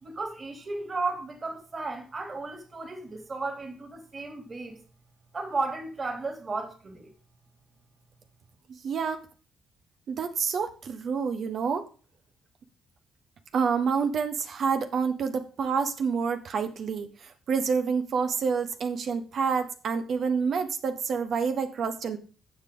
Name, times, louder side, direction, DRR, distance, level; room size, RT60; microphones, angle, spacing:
voice 1, 0.0-4.8 5.3-7.1, right 3 dB, 35° right, 3.1 m, -34 dB
voice 2, 8.8-9.2 10.1-11.9 13.5-22.2, right 6 dB, 60° right, 1.1 m, -28 dB
15.5 x 5.2 x 3.9 m
cardioid pair, 90°, 0 cm